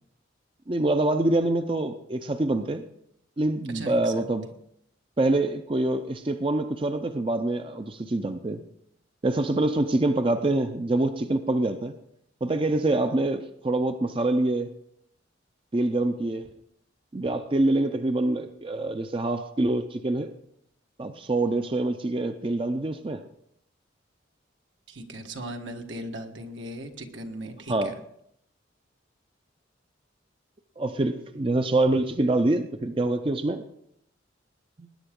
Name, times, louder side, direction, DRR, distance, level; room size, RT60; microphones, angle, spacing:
voice 1, 0.7-2.8 3.4-4.5 5.2-8.6 9.2-11.9 12.4-14.7 15.7-16.5 17.1-20.3 21.0-23.2 27.7-27.9 30.8-33.6 34.8-34.9, right 2 dB, 30° right, 8 dB, 0.5 m, -25 dB
voice 2, 3.7-4.3 24.9-28.0, right 1 dB, 75° right, 4 dB, 1.5 m, -38 dB
20.5 x 10.0 x 3.7 m, 0.74 s
head